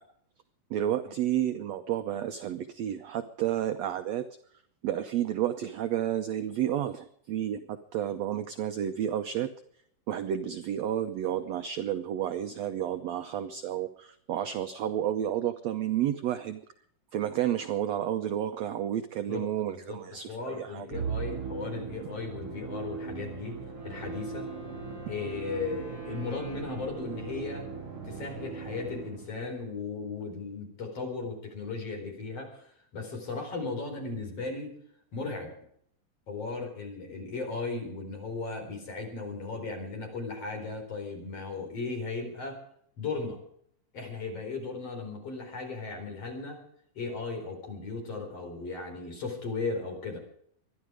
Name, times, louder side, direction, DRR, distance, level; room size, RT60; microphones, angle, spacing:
voice 1, 0.7-4.2 4.8-9.5 10.1-16.6 17.1-20.9, right 11 dB, 75° right, 9 dB, 1.6 m, -31 dB
voice 2, 19.7-23.6 23.8-24.5 25.1-27.7 28.0-34.7 35.1-35.5 36.3-42.6 43.0-43.4 43.9-46.6 46.9-50.2, left 4 dB, 45° left, 2 dB, 5.2 m, -36 dB
Musical instrument, 20.9-29.4, right 5 dB, 45° right, 4.3 m, -39 dB
Wind instrument woodwind instrument, 23.6-28.4, left 1 dB, 10° left, 7.9 m, -48 dB
25.0 x 11.0 x 4.9 m, 0.65 s
omnidirectional pair, 3.9 m